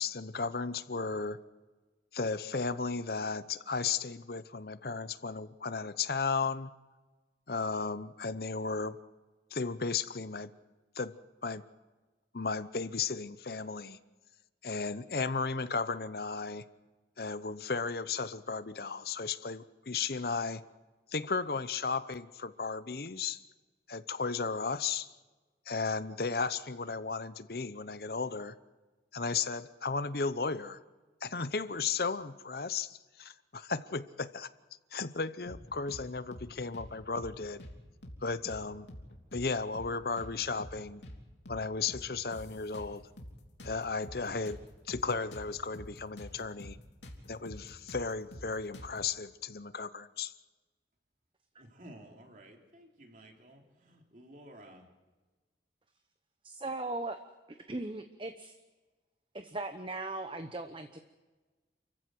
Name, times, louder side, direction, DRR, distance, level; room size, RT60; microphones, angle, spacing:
voice 1, 0.0-1.4 2.1-6.7 7.5-9.0 9.5-10.5 11.0-11.1 11.4-11.6 12.3-14.0 14.6-16.6 17.2-20.6 21.1-23.4 23.9-25.1 25.7-28.5 29.1-30.8 31.2-34.5 34.9-37.6 38.2-38.9 39.3-41.0 41.5-43.0 43.6-44.6 44.9-46.8 47.3-50.3, left 4 dB, 55° left, 14 dB, 0.8 m, -34 dB
sound 1, 35.5-36.0 36.3-36.5 36.7-37.8 38.0-38.2 38.5-39.5 39.7-39.9 40.2-41.2 41.5-41.6 41.9-43.3 43.6-46.3 46.6-46.8 47.0-49.1, equal, 80° left, 3.2 m, -47 dB
voice 2, 51.6-54.9, right 1 dB, 45° right, 2 dB, 3.5 m, -53 dB
voice 3, 56.4-57.2 57.7-58.6 59.3-61.0, right 2 dB, 30° right, 8 dB, 1.0 m, -38 dB
29.0 x 15.0 x 7.8 m, 1.3 s
head